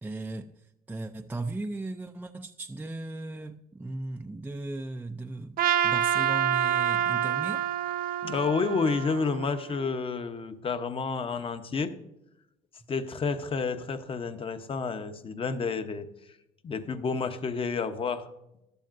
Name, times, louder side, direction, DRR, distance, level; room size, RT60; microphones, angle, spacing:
voice 1, 0.0-7.7, right 2 dB, 10° right, 0.4 m, -37 dB
Trumpet, 5.6-9.9, right 10 dB, 60° right, 0.6 m, -27 dB
voice 2, 8.2-11.9 12.9-16.1 16.6-18.3, left 4 dB, 30° left, 0.9 m, -30 dB
15.0 x 11.5 x 2.6 m
cardioid pair, 110°, 17 cm